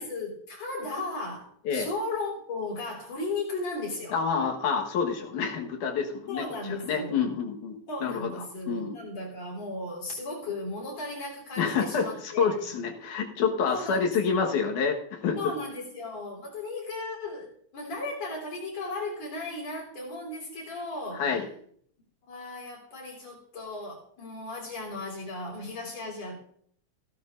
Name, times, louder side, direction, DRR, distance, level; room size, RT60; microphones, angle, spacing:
voice 1, 0.0-4.2 6.3-7.2 7.9-12.6 13.7-14.5 15.4-21.2 22.3-26.4, left 2 dB, 55° left, -2 dB, 4.9 m, -36 dB
voice 2, 4.1-9.0 11.6-15.5 21.1-21.5, left 6 dB, 75° left, 2 dB, 2.9 m, -28 dB
16.0 x 13.0 x 2.6 m, 0.62 s
omnidirectional pair, 3.6 m